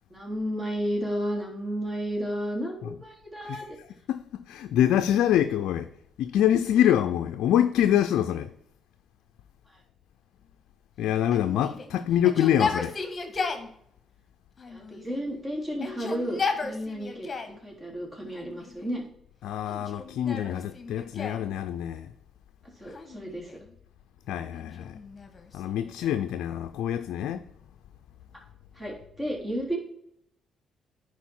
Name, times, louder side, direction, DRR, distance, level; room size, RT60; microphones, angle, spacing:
voice 1, 0.1-3.7 14.7-17.3 17.6-19.0 22.8-23.5 28.7-29.8, equal, 20° right, 3.4 m, -32 dB
voice 2, 4.1-5.9 6.2-8.5 11.0-12.9 19.4-22.1 24.3-24.9 25.5-27.4, left 10 dB, 80° left, 0.4 m, -25 dB
Yell, 11.3-13.7 14.6-15.3 15.7-17.6 18.3-19.0 19.7-21.5 22.9-23.7 24.6-26.3, left 4 dB, 35° left, 1.4 m, -35 dB
10.5 x 4.5 x 4.4 m
cardioid pair, 70°, 0 cm